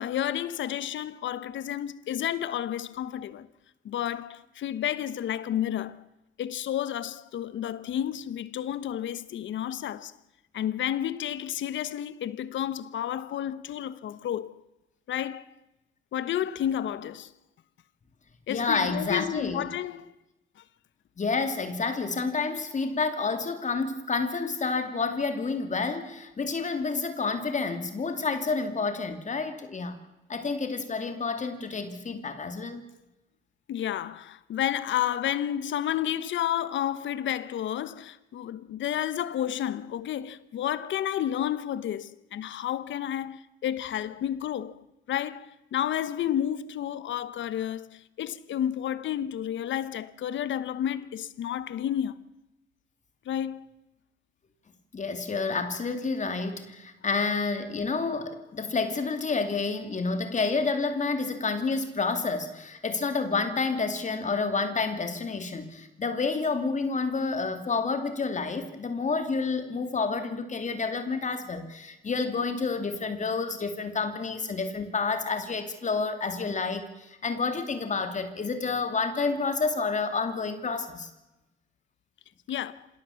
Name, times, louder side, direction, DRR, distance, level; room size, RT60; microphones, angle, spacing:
voice 1, 0.0-3.5 3.8-6.0 6.4-10.2 10.5-14.5 15.1-15.5 16.1-17.3 18.5-20.1 20.6-20.7 33.7-52.2 53.2-53.7 82.5-82.9, left 10 dB, 70° left, 1.2 m, -31 dB
voice 2, 18.5-19.7 21.2-30.0 30.3-32.9 54.9-81.1, left 4 dB, 35° left, 2.7 m, -29 dB
26.5 x 17.0 x 7.1 m
cardioid pair, 90°, 20 cm